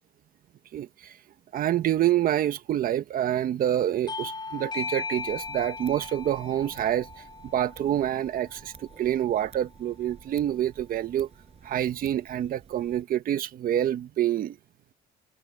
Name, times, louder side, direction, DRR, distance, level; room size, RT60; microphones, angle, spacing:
voice 1, 0.7-1.2 1.5-7.1 7.5-11.3 11.6-14.6, right 11 dB, 60° right, 1.5 m, -27 dB
Bell / Doorbell, 4.1-9.1, left 4 dB, 25° left, 3.2 m, -38 dB
sound 1, 5.1-13.0, right 6 dB, 40° right, 7.4 m, -52 dB
cardioid pair, 110°, 17 cm